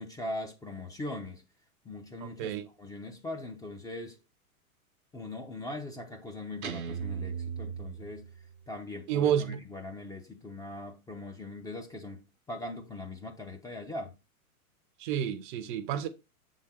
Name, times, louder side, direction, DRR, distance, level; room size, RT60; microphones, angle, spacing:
voice 1, 0.0-1.4 1.8-4.2 5.1-8.3 8.7-14.1, left 2 dB, 10° left, 0.5 m, -41 dB
voice 2, 2.2-2.7 9.1-9.6 15.0-16.1, right 9 dB, 35° right, 0.6 m, -30 dB
Guitar, 6.6-8.7, right 7 dB, 75° right, 0.9 m, -38 dB
6.9 x 3.8 x 4.2 m
figure-of-eight pair, 100°, 43 cm